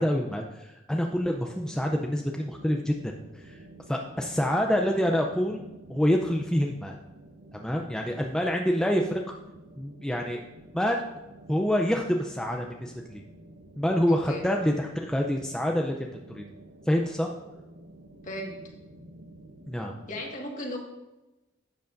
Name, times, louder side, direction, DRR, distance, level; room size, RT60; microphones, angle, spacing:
voice 1, 0.0-3.0 3.3-3.6 3.9-5.6 5.9-7.0 7.5-9.2 9.8-10.4 10.7-11.0 11.5-13.2 13.8-16.4 16.9-17.3 19.7-19.9, equal, 5° left, 1 dB, 0.5 m, -27 dB
sound 1, 1.1-20.3, right 1 dB, 60° right, 0.9 m, -50 dB
voice 2, 14.1-14.4 18.2-18.6 20.1-20.8, left 1 dB, 40° left, 0 dB, 1.8 m, -35 dB
12.0 x 8.1 x 2.6 m, 1.0 s
head